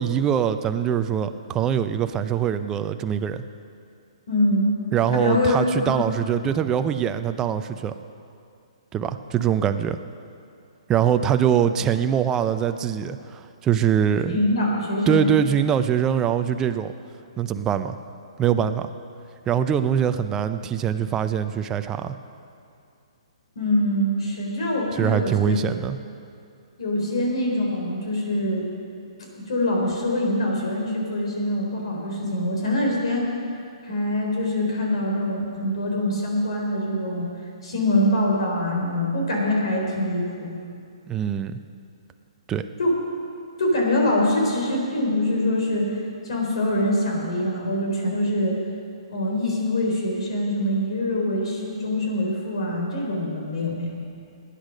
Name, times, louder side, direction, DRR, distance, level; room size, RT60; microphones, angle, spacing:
voice 1, 0.0-3.4 4.9-7.9 8.9-10.0 10.9-14.4 15.1-16.9 17.4-18.0 18.4-18.9 19.5-22.2 25.0-26.0 41.1-41.6 42.5-42.7, right 9 dB, 20° right, 9 dB, 0.5 m, -23 dB
voice 2, 4.3-4.7 5.1-6.0 14.3-15.3 23.6-25.6 26.8-28.7 29.5-33.3 33.8-37.3 37.6-40.6 42.8-43.0 43.6-45.9 46.2-48.5 49.1-54.0, left 1 dB, 65° left, -1 dB, 4.0 m, -24 dB
17.5 x 10.0 x 5.2 m, 2.5 s
hypercardioid pair, 135°, 3 cm